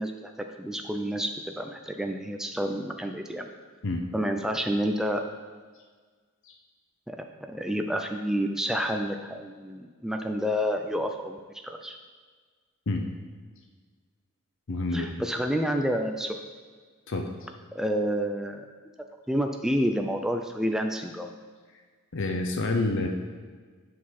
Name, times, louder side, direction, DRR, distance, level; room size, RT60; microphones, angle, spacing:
voice 1, 0.0-3.5 4.1-5.2 7.1-12.0 14.9-16.4 17.7-18.7 19.3-21.3, equal, ahead, 4 dB, 0.3 m, -29 dB
voice 2, 14.7-15.1 17.1-17.5 22.1-23.1, left 2 dB, 55° left, 4 dB, 0.7 m, -28 dB
7.4 x 6.0 x 4.2 m, 1.5 s
head